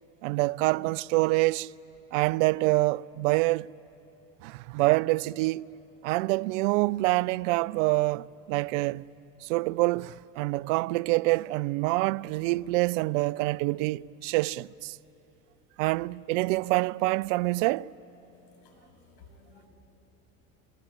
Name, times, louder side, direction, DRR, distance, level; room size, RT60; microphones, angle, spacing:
voice 1, 0.2-1.7 2.1-3.7 4.4-5.6 6.0-9.1 9.4-15.0 15.8-17.9, right 21 dB, 60° right, 0.5 m, -26 dB
voice 2, 18.3-18.8 19.1-19.7, left 4 dB, 60° left, 7.1 m, -56 dB
25.0 x 22.5 x 8.9 m
hypercardioid pair, 80°, 43 cm